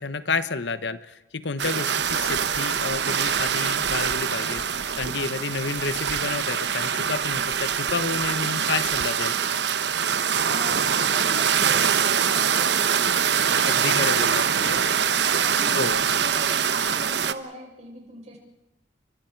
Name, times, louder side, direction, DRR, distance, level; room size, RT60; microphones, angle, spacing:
voice 1, 0.0-4.6 4.9-9.3 13.6-14.8 15.7-16.0, left 4 dB, 65° left, 13 dB, 1.1 m, -30 dB
sound 1, 1.6-17.3, right 7 dB, 65° right, 1.0 m, -24 dB
voice 2, 10.4-13.1 14.6-18.4, right 1 dB, 40° right, 0 dB, 6.6 m, -40 dB
30.0 x 24.0 x 4.7 m, 0.89 s
head